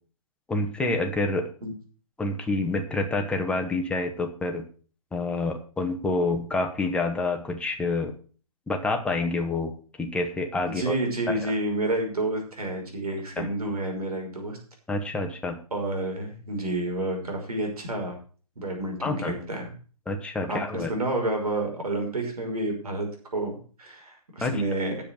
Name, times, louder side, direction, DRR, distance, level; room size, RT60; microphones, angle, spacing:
voice 1, 0.5-1.5 2.2-4.6 5.1-8.1 8.7-9.7 10.0-10.9 11.3-11.4 13.4-13.5 14.9-15.6 19.0-19.4 20.1-20.9 24.4-24.6, left 2 dB, 5° left, 4 dB, 1.4 m, -27 dB
voice 2, 10.7-14.6 15.7-18.1 18.6-19.7 20.5-23.1 23.3-24.9, right 2 dB, 80° right, 2 dB, 5.7 m, -29 dB
10.0 x 7.5 x 6.4 m, 0.40 s
hypercardioid pair, 140°, 19 cm